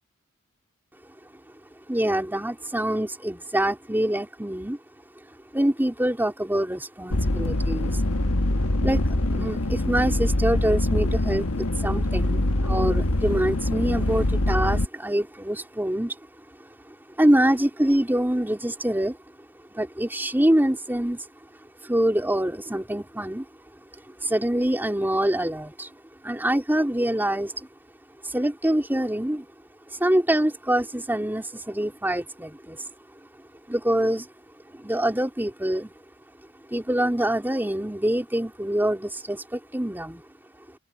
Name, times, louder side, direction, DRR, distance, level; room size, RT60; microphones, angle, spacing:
voice 1, 1.9-4.8 5.5-8.0 8.8-16.2 16.6-19.2 19.7-21.2 21.8-23.4 24.2-25.9 26.2-27.7 28.2-29.5 29.9-32.8 33.7-34.3 34.7-35.9 36.7-40.2, right 1 dB, 10° right, 3.2 m, -25 dB
sound 1, 7.1-14.9, left 1 dB, 75° left, 1.6 m, -24 dB
open air
head